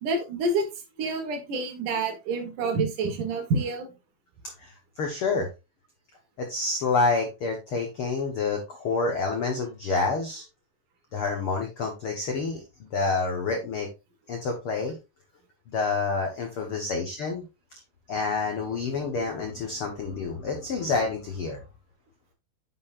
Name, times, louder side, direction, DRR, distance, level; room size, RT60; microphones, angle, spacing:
voice 1, 0.0-0.7 1.0-3.9, right 3 dB, 65° right, 5 dB, 2.7 m, -28 dB
voice 2, 4.4-5.5 6.4-10.4 11.1-13.9 14.3-15.0 15.7-17.4 18.1-21.6, left 4 dB, 80° left, 3 dB, 1.2 m, -28 dB
9.6 x 6.3 x 2.5 m, 0.27 s
omnidirectional pair, 4.3 m